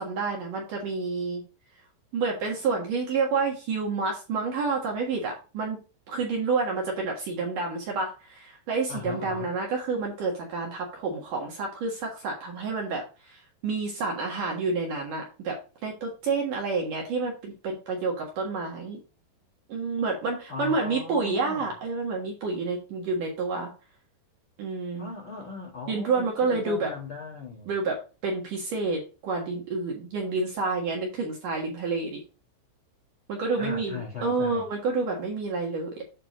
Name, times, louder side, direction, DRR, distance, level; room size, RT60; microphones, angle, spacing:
voice 1, 0.0-1.4 2.1-5.8 6.1-19.0 19.7-23.7 24.6-25.1 25.9-26.9 27.7-32.2 33.3-36.0, right 4 dB, 60° right, 2.4 m, -29 dB
voice 2, 8.9-9.5 20.5-21.7 25.0-27.7 33.6-34.6, left 4 dB, 65° left, 1.2 m, -38 dB
8.9 x 3.6 x 6.1 m
omnidirectional pair, 5.5 m